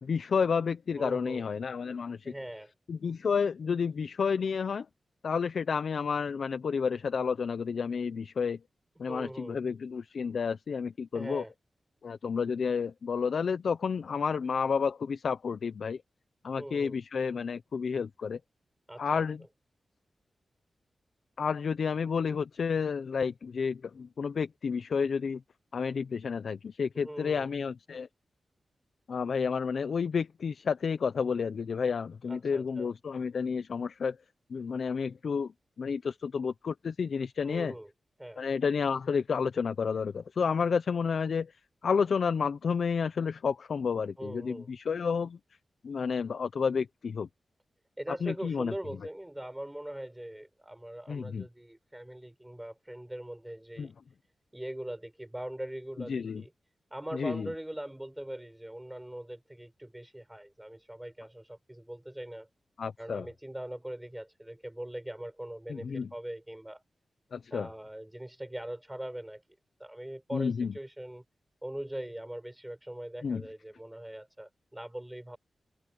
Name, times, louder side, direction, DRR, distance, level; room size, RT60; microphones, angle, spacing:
voice 1, 0.0-2.3 2.9-4.9 5.2-8.6 9.0-11.4 12.0-16.0 16.4-18.4 19.0-19.4 21.4-25.4 25.7-28.1 29.1-34.2 34.5-35.5 35.8-37.7 38.4-41.5 41.8-45.4 45.8-47.3 48.2-48.7 51.1-51.4 53.8-53.9 56.1-56.4 57.1-57.5 62.8-63.3 65.7-66.1 67.3-67.7 70.3-70.7 73.2-73.4, left 6 dB, 70° left, 0.7 m, -30 dB
voice 2, 1.0-1.5 2.2-2.7 9.1-9.6 11.1-11.5 16.6-17.0 18.9-19.2 26.9-27.5 32.3-32.9 37.4-37.9 38.2-38.5 44.2-44.7 48.0-53.9 54.5-56.5 56.9-62.5 63.0-66.8 67.5-69.4 69.8-71.2 71.6-75.4, right 1 dB, 10° right, 5.9 m, -41 dB
wide cardioid pair, 130°, 0 cm